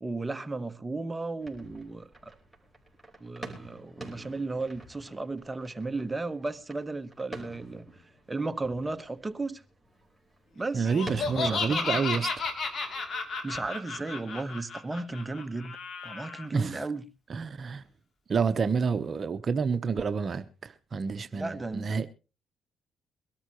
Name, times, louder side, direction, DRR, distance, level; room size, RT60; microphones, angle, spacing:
voice 1, 0.0-2.3 3.2-7.9 8.3-9.6 10.5-10.9 11.4-12.0 13.4-15.8 16.0-17.0 21.4-22.1, right 3 dB, 15° right, 1.2 m, -35 dB
sound 1, 1.4-13.7, right 1 dB, 5° left, 4.9 m, -47 dB
voice 2, 10.7-12.3 16.5-16.9 17.3-17.8 18.3-22.1, right 5 dB, 45° right, 0.9 m, -29 dB
Laughter, 10.8-16.4, left 4 dB, 55° left, 3.0 m, -33 dB
22.5 x 13.0 x 3.0 m
cardioid pair, 90°, 0 cm